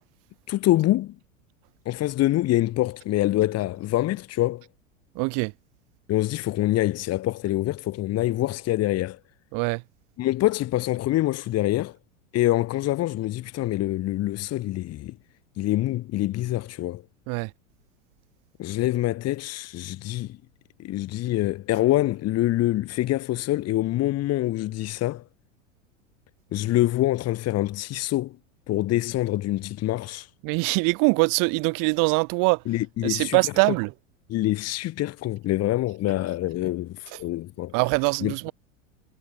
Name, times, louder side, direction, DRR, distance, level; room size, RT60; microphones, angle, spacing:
voice 1, 0.5-1.2 1.9-4.6 6.1-9.2 10.2-12.0 12.3-15.2 15.6-17.0 18.6-20.4 20.8-25.2 26.5-28.4 28.7-30.3 32.7-33.4 34.3-37.7 38.2-38.5, left 15 dB, 40° left, 2.4 m, -25 dB
voice 2, 5.1-5.5 9.5-9.8 17.3-17.5 30.4-32.6 33.0-33.9 37.7-38.5, right 31 dB, 55° right, 7.4 m, -23 dB
hypercardioid pair, 95°, 39 cm